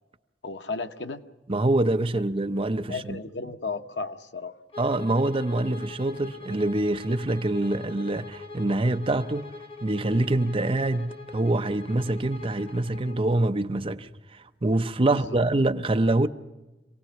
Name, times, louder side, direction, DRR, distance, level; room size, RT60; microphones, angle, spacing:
voice 1, 0.4-1.2 2.9-4.6 15.0-15.4, left 3 dB, 85° left, 1.0 m, -34 dB
voice 2, 1.5-3.2 4.8-9.5 9.8-16.3, right 2 dB, 30° right, 0.8 m, -25 dB
Bowed string instrument, 4.7-13.2, left 3 dB, 35° left, 1.3 m, -43 dB
26.5 x 18.0 x 5.9 m
head